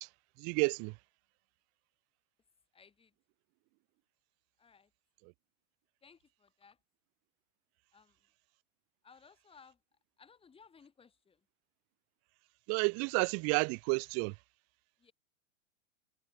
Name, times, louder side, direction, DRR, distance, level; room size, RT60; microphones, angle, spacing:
voice 1, 0.4-1.0 5.2-5.3 12.7-14.4, right 34 dB, 40° right, 2.0 m, -31 dB
voice 2, 2.7-3.1 4.6-4.9 6.0-6.8 7.9-8.2 9.0-9.8 10.2-11.4 15.0-15.1, left 6 dB, 15° left, 4.3 m, -61 dB
figure-of-eight pair, 100°, 39 cm